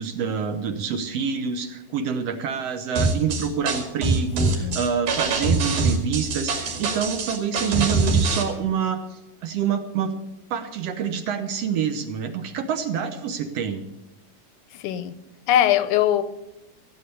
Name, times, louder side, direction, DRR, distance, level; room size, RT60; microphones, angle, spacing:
voice 1, 0.0-10.1 10.5-13.8, right 6 dB, 65° right, 7 dB, 1.8 m, -27 dB
sound 1, 3.0-8.4, right 3 dB, 90° right, 3.8 m, -23 dB
voice 2, 14.7-15.2 15.5-16.2, left 11 dB, 85° left, 13 dB, 2.3 m, -21 dB
15.0 x 9.1 x 6.9 m, 0.92 s
omnidirectional pair, 3.4 m